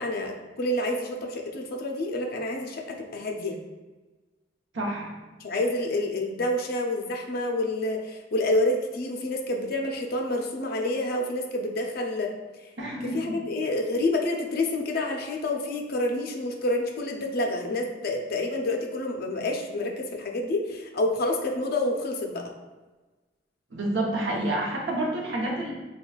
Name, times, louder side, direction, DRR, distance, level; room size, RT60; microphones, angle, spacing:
voice 1, 0.0-3.6 5.4-12.3 13.1-22.5, left 1 dB, 55° left, 2 dB, 0.5 m, -28 dB
voice 2, 4.7-5.1 12.8-13.4 23.7-25.7, right 1 dB, 75° right, -2 dB, 0.8 m, -28 dB
5.5 x 2.2 x 2.3 m, 1.2 s
head